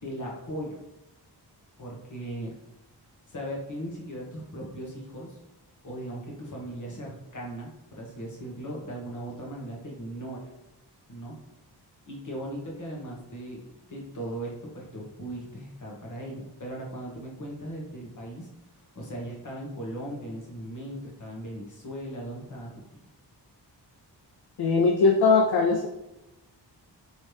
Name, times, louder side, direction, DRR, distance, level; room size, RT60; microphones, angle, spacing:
voice 1, 0.0-0.8 1.8-2.5 3.3-5.4 5.8-10.5 11.1-11.3 12.1-13.6 13.9-18.5 18.9-23.0, right 1 dB, 45° left, -2 dB, 1.3 m, -38 dB
voice 2, 24.6-25.9, left 4 dB, 65° left, 2 dB, 0.5 m, -20 dB
4.4 x 3.1 x 3.3 m, 0.92 s
wide cardioid pair, 125°, 42 cm